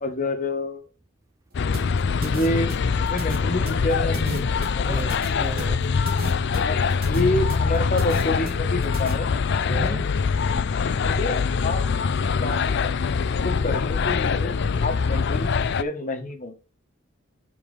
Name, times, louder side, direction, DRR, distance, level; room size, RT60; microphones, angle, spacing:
voice 1, 0.0-0.9 2.2-2.7 3.0-5.0 6.5-9.3 9.8-10.0 11.0-11.9 12.2-12.6 13.2-14.5 14.8-16.6, left 2 dB, 40° left, 1.3 m, -28 dB
sound 1, 1.5-15.8, left 5 dB, 60° left, 0.5 m, -23 dB
sound 2, 1.7-9.1, right 2 dB, 50° right, 1.8 m, -36 dB
voice 2, 4.9-6.2 9.7-10.1 10.6-11.0, right 3 dB, 15° right, 0.4 m, -36 dB
5.3 x 4.7 x 5.4 m
head